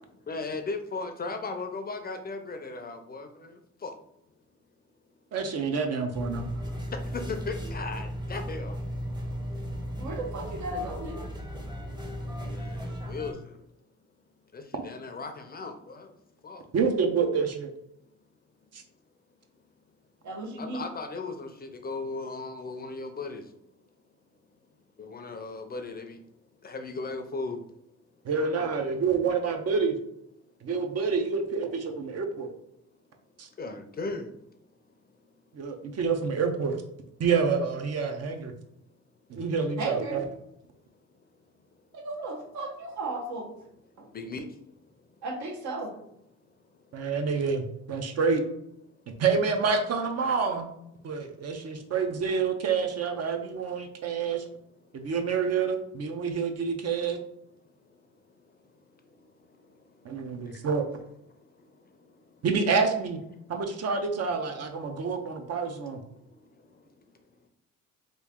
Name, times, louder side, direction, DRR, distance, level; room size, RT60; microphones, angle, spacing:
voice 1, 0.3-3.5 3.8-3.9 7.3-8.8 12.5-13.4 14.5-16.1 16.4-16.6 20.6-23.4 25.0-26.2 26.6-27.6 33.6-34.3 44.1-44.4, left 3 dB, 30° left, 6 dB, 0.5 m, -36 dB
voice 2, 5.3-6.4 16.7-17.7 18.7-18.8 28.2-30.0 30.6-32.5 33.4-33.5 35.5-36.8 37.2-38.5 39.3-40.3 46.9-48.4 49.2-50.7 51.0-54.4 54.9-57.2 60.0-60.8 62.4-63.2 63.5-66.0, right 5 dB, 55° right, 5 dB, 0.7 m, -28 dB
sound 1, 6.1-13.3, equal, 15° right, 0.8 m, -36 dB
voice 3, 6.5-6.8 10.0-11.3 20.2-20.8 39.8-40.2 41.9-43.5 44.0-44.1 45.2-45.9, right 2 dB, 70° right, 1 dB, 1.0 m, -35 dB
3.0 x 2.5 x 3.6 m, 0.77 s
cardioid pair, 90°, 30 cm